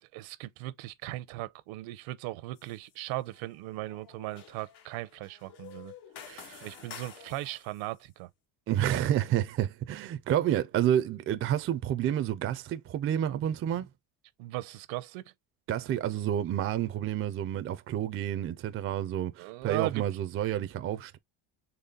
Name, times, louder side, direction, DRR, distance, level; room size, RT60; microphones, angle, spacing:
voice 1, 0.1-5.9 6.6-8.3 14.4-15.3 19.4-20.1, right 17 dB, 75° right, 0.7 m, -38 dB
sound 1, 2.6-2.9 3.3-7.9, left 8 dB, 85° left, 1.8 m, -50 dB
voice 2, 6.3-6.7 8.7-13.9 15.7-21.2, right 11 dB, 30° right, 0.4 m, -29 dB
4.2 x 3.4 x 3.7 m
cardioid pair, 140°, 49 cm